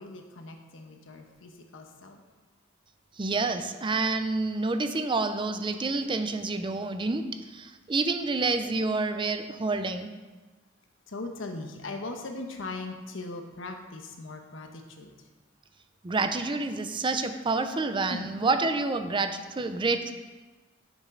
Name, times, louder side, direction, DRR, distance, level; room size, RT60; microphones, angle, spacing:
voice 1, 0.0-2.2 11.1-15.1 18.1-18.3, left 2 dB, 85° left, 4 dB, 1.1 m, -39 dB
voice 2, 3.2-10.1 16.0-20.1, right 3 dB, 25° right, 8 dB, 0.5 m, -28 dB
9.7 x 7.3 x 3.9 m, 1.3 s
head